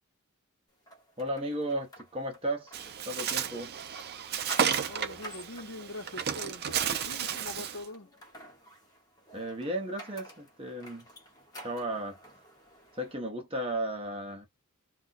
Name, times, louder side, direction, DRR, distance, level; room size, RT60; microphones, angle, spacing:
sound 1, 0.9-13.1, right 1 dB, 15° left, 1.0 m, -50 dB
voice 1, 1.2-2.8 3.1-3.7 9.3-11.0 11.6-12.2 12.9-14.5, right 1 dB, 25° right, 0.8 m, -34 dB
Bird, 2.7-7.8, right 8 dB, 50° right, 0.5 m, -32 dB
voice 2, 4.8-8.1, left 2 dB, 65° left, 0.9 m, -43 dB
2.4 x 2.2 x 3.9 m
head